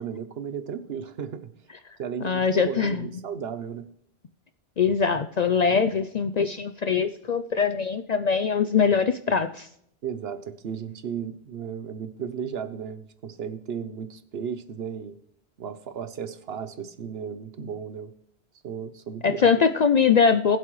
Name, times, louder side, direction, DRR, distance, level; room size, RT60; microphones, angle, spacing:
voice 1, 0.0-1.5 2.0-3.9 10.0-15.2 15.6-18.1 18.6-19.7, right 7 dB, 70° right, 12 dB, 1.0 m, -35 dB
voice 2, 2.2-3.1 4.8-9.7 19.2-20.6, left 6 dB, 55° left, 10 dB, 0.5 m, -22 dB
21.0 x 7.6 x 3.1 m, 0.70 s
omnidirectional pair, 1.1 m